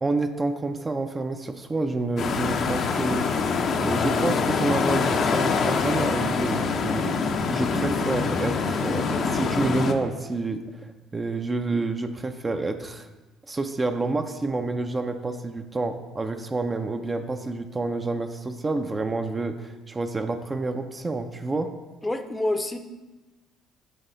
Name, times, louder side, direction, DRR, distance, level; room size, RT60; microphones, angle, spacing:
voice 1, 0.0-3.5 3.8-7.1 7.5-13.1 13.5-21.7, right 3 dB, 25° right, 6 dB, 0.6 m, -28 dB
sound 1, 2.2-9.9, left 5 dB, 50° left, 0.7 m, -25 dB
voice 2, 22.0-22.8, left 1 dB, 15° left, 7 dB, 0.7 m, -27 dB
10.0 x 4.0 x 3.9 m, 1.2 s
hypercardioid pair, 55°, 0 cm